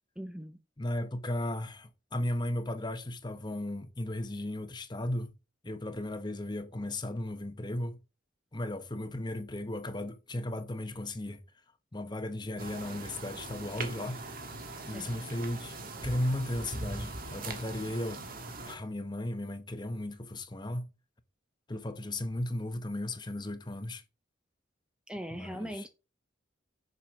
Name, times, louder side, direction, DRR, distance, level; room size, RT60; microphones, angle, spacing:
voice 1, 0.2-0.6 14.8-15.1 25.1-25.9, equal, 5° right, 0.6 m, -40 dB
voice 2, 0.8-5.3 5.6-8.0 8.5-11.4 11.9-14.2 14.8-15.8 16.0-18.3 18.6-20.9 21.7-24.0 25.3-25.9, left 1 dB, 20° left, 0.8 m, -35 dB
sound 1, 12.6-18.8, right 2 dB, 45° right, 1.6 m, -41 dB
7.3 x 5.5 x 6.1 m
head